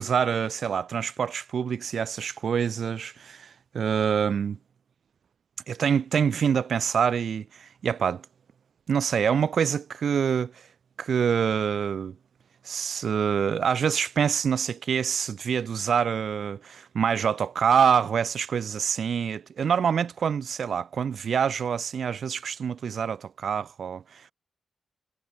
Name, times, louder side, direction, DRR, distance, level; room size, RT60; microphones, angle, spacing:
voice 1, 0.0-4.6 5.7-8.2 8.9-10.7 11.0-12.2 12.6-24.3, right 7 dB, 55° right, 0.8 m, -26 dB
wide cardioid pair, 165°, 0 cm